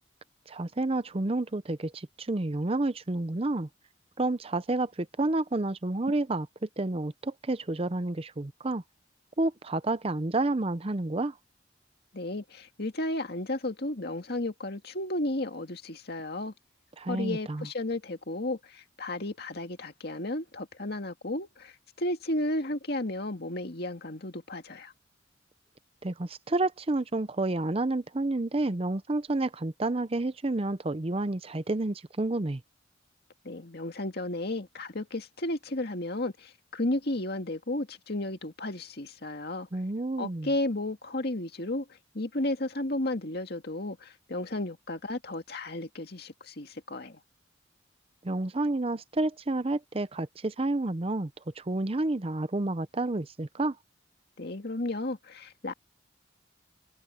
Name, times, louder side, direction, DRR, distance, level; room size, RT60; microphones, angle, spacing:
voice 1, 0.5-3.7 4.2-8.8 9.4-11.3 17.0-17.7 26.0-32.6 39.7-40.5 48.2-51.3 51.6-53.8, right 2 dB, 30° right, 0.6 m, -30 dB
voice 2, 12.1-16.5 17.1-24.9 33.4-39.7 40.2-41.9 42.1-47.2 54.4-55.7, left 1 dB, 55° left, 2.1 m, -33 dB
head